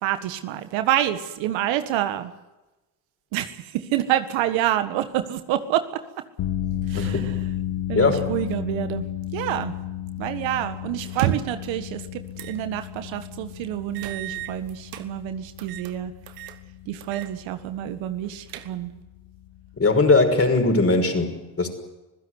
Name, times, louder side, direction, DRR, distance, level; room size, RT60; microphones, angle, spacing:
voice 1, 0.0-2.3 3.3-6.0 6.9-7.3 7.9-9.1 9.3-9.7 10.2-16.1 16.9-18.9, right 12 dB, 75° right, 10 dB, 1.7 m, -27 dB
sound 1, 6.4-20.7, left 11 dB, 65° left, 1.8 m, -33 dB
voice 2, 6.9-7.3 7.9-8.2 19.8-21.7, left 3 dB, 30° left, 5 dB, 5.8 m, -20 dB
sound 2, 11.1-11.7 12.4-12.6 13.0-13.1 13.9-15.1 15.6-15.9 16.3-16.6 17.0-17.3 17.6-17.7 18.2-19.0, right 12 dB, 90° right, 1.4 m, -31 dB
25.5 x 16.0 x 8.1 m, 1.1 s
hypercardioid pair, 60°, 47 cm